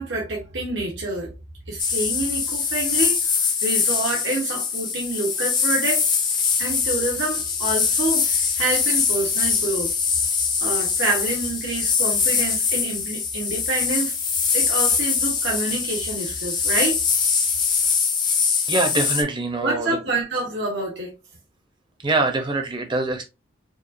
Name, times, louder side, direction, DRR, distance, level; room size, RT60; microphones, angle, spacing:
voice 1, 0.0-1.3 1.7-6.1 6.6-9.9 10.6-14.2 14.5-17.0 19.6-21.1, right 2 dB, 70° right, 1.1 m, -27 dB
sound 1, 1.8-19.2, left 5 dB, 20° left, 0.6 m, -23 dB
voice 2, 18.7-20.0 22.0-23.2, right 2 dB, 25° right, 0.8 m, -24 dB
5.1 x 2.4 x 2.6 m
head